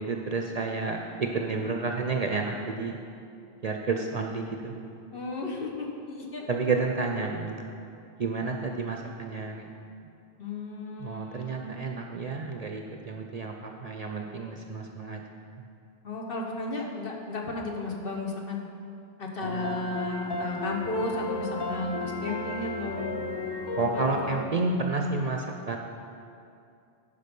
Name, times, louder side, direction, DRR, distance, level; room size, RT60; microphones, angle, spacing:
voice 1, 0.0-3.0 3.6-4.8 6.5-7.6 8.2-9.7 11.0-15.2 23.8-25.8, right 3 dB, 50° right, 2 dB, 0.5 m, -30 dB
voice 2, 5.1-6.5 10.4-12.0 16.0-18.6 19.2-23.3 23.9-24.4, left 2 dB, 65° left, 0 dB, 1.2 m, -34 dB
sound 1, 19.4-24.4, left 3 dB, 30° left, 0.5 m, -34 dB
10.5 x 5.3 x 5.3 m, 2.5 s
omnidirectional pair, 1.1 m